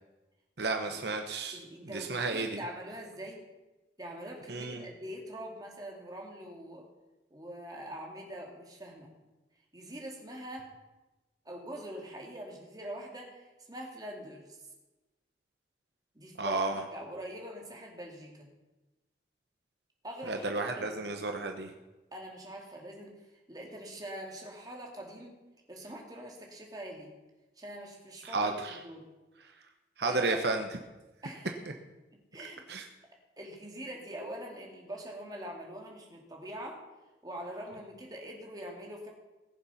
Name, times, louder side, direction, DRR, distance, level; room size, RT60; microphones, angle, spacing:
voice 1, 0.6-1.6 1.8-2.6 4.5-4.8 16.4-16.8 20.3-21.7 28.2-28.8 30.0-30.7 32.7-32.8, right 3 dB, 70° right, 4 dB, 1.0 m, -32 dB
voice 2, 1.5-3.4 4.0-6.8 7.3-9.1 9.7-10.7 11.4-14.5 16.1-18.5 20.0-21.2 22.1-23.1 23.5-25.3 25.7-27.1 27.6-29.0 30.0-30.4 31.2-31.6 32.3-32.6 33.4-36.8 37.2-39.1, right 1 dB, 20° right, -1 dB, 2.7 m, -43 dB
19.5 x 7.2 x 5.7 m, 1.1 s
head